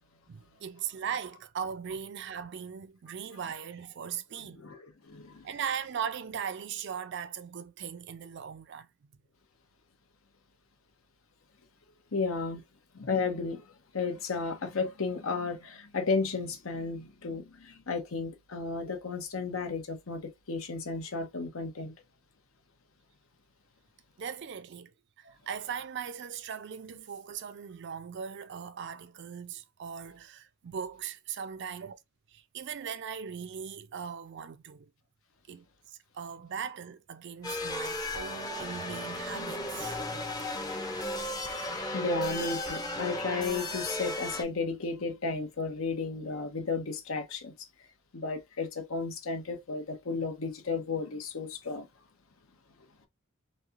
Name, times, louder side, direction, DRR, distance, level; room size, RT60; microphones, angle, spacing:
voice 1, 0.3-4.6 5.4-8.9 24.2-32.0 32.3-34.9 35.5-40.2, right 7 dB, 60° right, 0.4 m, -39 dB
voice 2, 4.6-5.5 12.1-12.6 12.9-21.9 41.9-47.5 48.1-51.9, left 4 dB, 90° left, 0.9 m, -33 dB
sound 1, 37.4-44.4, left 1 dB, 20° left, 0.5 m, -35 dB
3.1 x 2.7 x 2.4 m
head